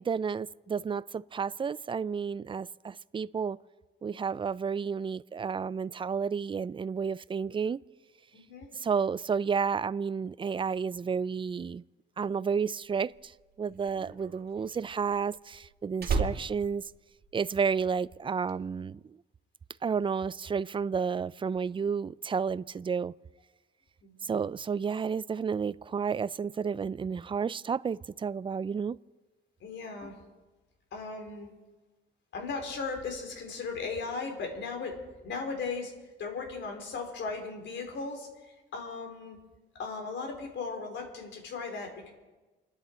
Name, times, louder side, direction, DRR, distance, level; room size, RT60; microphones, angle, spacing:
voice 1, 0.0-3.6 4.0-7.8 8.7-11.8 12.2-13.3 13.6-16.8 17.3-19.0 19.8-23.1 24.2-29.0, right 6 dB, 25° right, 0.4 m, -31 dB
voice 2, 8.3-8.7 24.0-24.3 29.6-30.1 30.9-31.5 32.3-35.0 35.2-35.9 36.2-39.4 39.8-42.1, left 4 dB, 65° left, 3.9 m, -37 dB
Slam, 13.1-17.8 18.1-18.5, right 4 dB, 50° right, 2.2 m, -35 dB
29.0 x 10.5 x 4.5 m
cardioid pair, 90°, 20 cm